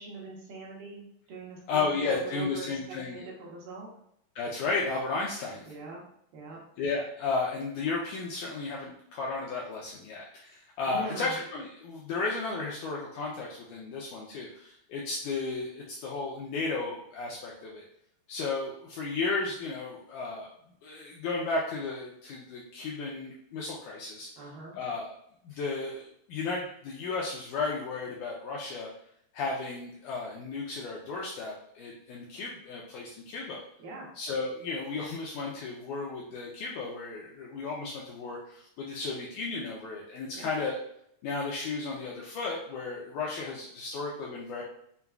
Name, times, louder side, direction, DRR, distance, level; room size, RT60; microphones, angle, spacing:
voice 1, 0.0-3.9 5.7-6.0 6.3-6.6 10.9-11.4 24.4-24.7 33.8-34.1 40.3-40.5, right 3 dB, 80° right, -3 dB, 2.8 m, -42 dB
voice 2, 1.7-3.2 4.4-5.6 6.8-17.8 18.3-20.5 20.8-24.3 24.8-25.1 25.4-26.0 26.3-28.9 29.3-33.6 34.2-40.8 41.2-44.6, left 3 dB, 85° left, -3 dB, 1.8 m, -34 dB
6.8 x 2.3 x 2.3 m, 0.70 s
omnidirectional pair, 4.1 m